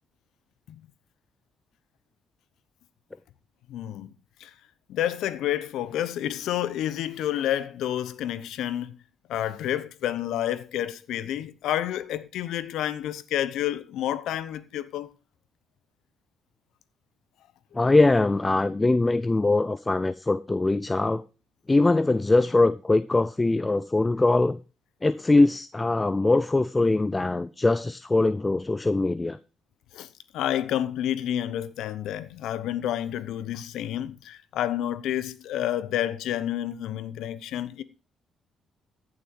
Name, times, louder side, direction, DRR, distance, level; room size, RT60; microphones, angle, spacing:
voice 1, 3.7-4.1 4.4-4.5 4.9-9.0 9.3-15.1 29.9-30.1 30.3-37.8, left 11 dB, 85° left, 0.9 m, -29 dB
voice 2, 17.7-21.2 21.7-24.6 25.0-29.4, left 2 dB, 20° left, 0.5 m, -22 dB
15.0 x 6.9 x 4.6 m
cardioid pair, 100°, 0 cm